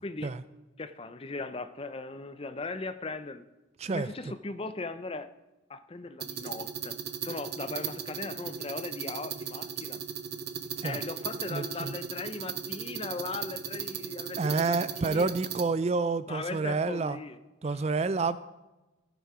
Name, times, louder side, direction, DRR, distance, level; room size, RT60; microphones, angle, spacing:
voice 1, 0.0-0.3 0.8-3.4 3.9-5.3 5.7-7.0 7.2-10.0 10.8-15.3 16.3-17.4 17.6-17.8, left 3 dB, 25° left, 11 dB, 0.5 m, -38 dB
voice 2, 3.8-4.3 10.8-11.0 11.5-11.9 14.4-17.2 17.6-18.4, right 4 dB, 30° right, 15 dB, 0.3 m, -29 dB
sound 1, 6.2-15.6, right 8 dB, 50° right, 0.8 m, -37 dB
15.0 x 8.3 x 5.0 m, 1.1 s
head